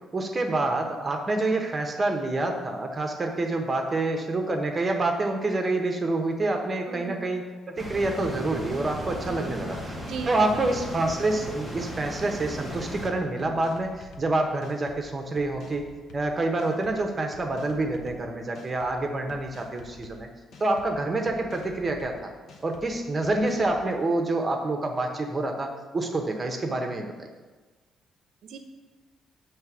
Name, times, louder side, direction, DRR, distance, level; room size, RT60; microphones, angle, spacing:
voice 1, 0.1-10.0 10.3-20.3 20.6-22.3 22.6-27.3, right 2 dB, 25° right, 3 dB, 0.9 m, -27 dB
voice 2, 6.9-7.2 9.2-9.5 10.0-10.4 19.3-19.4 28.4-28.6, right 5 dB, 75° right, 6 dB, 0.6 m, -38 dB
sound 1, 7.8-13.1, equal, 10° left, 0.9 m, -36 dB
sound 2, 8.2-8.3 8.7-9.1 9.5-10.3 10.7-11.0 11.4-12.3 12.6-13.0 13.4-14.2 14.6-15.0 15.4-16.2 16.6-17.0 17.3-18.2 18.5-18.9 19.3-20.1 20.5-20.9 21.3-22.1 22.5-22.8 23.2-23.8, left 3 dB, 65° left, 0.8 m, -49 dB
7.4 x 3.3 x 6.1 m, 1.3 s
cardioid pair, 135°, 0 cm